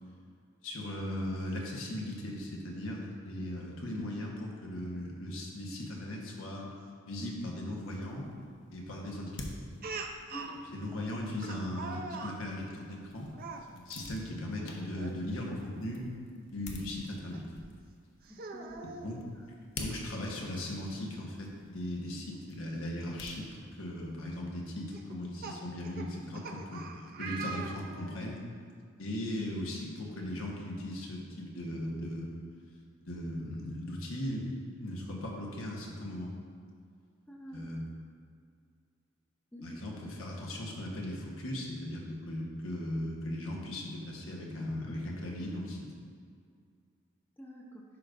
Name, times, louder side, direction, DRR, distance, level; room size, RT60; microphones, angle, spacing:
voice 1, 0.6-6.7 7.1-8.3 8.7-9.5 10.7-13.3 13.7-16.1 16.4-17.4 18.8-19.2 19.7-26.9 27.2-28.4 29.0-32.3 33.1-34.4 34.8-36.3 37.5-37.8 39.6-45.9, left 1 dB, 90° left, -2 dB, 1.2 m, -38 dB
sound 1, 7.7-24.2, left 2 dB, 60° left, 0.8 m, -50 dB
Speech, 9.8-10.6 11.4-12.4 13.3-13.7 14.9-15.2 15.6-15.7 17.3-17.4 18.2-19.1 20.4-20.5 20.9-21.0 22.8-22.9 23.6-23.8 24.9-28.2, right 4 dB, 45° right, 0.5 m, -42 dB
voice 2, 10.3-10.6 10.9-11.0 18.3-18.9 19.3-19.4 25.0-25.1 37.3-37.7 39.5-39.8 47.4-47.8, equal, 10° left, -2 dB, 0.7 m, -47 dB
11.0 x 5.0 x 2.6 m, 2.2 s
head